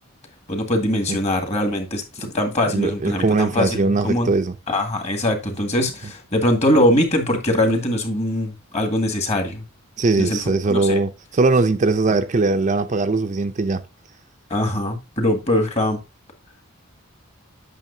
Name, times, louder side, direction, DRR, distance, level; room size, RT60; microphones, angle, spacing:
voice 1, 0.5-4.3 4.7-9.6 10.2-11.0 14.5-16.0, left 1 dB, 30° left, 1.9 m, -22 dB
voice 2, 2.7-4.5 10.0-13.8, right 3 dB, 35° right, 0.5 m, -20 dB
9.1 x 6.3 x 2.7 m
head